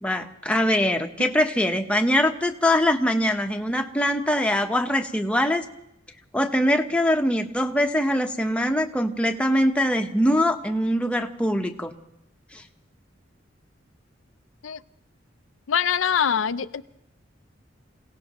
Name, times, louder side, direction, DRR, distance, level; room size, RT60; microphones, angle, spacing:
voice 1, 0.0-5.6 6.3-11.9 12.5-12.6, left 1 dB, 5° left, 4 dB, 1.0 m, -23 dB
voice 2, 15.7-16.8, left 7 dB, 90° left, 12 dB, 0.5 m, -23 dB
27.0 x 17.5 x 3.1 m, 0.83 s
head